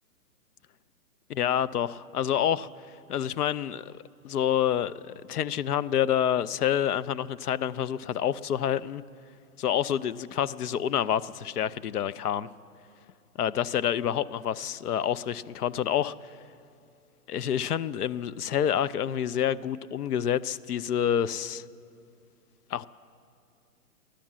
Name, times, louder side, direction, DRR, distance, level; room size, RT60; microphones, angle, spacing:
voice 1, 1.3-2.7 3.1-3.9 4.2-9.0 9.6-12.5 13.4-16.3 17.3-21.6 22.7-22.9, left 9 dB, 80° left, 16 dB, 0.6 m, -28 dB
15.5 x 11.5 x 7.4 m, 2.5 s
hypercardioid pair, 145°, 45 cm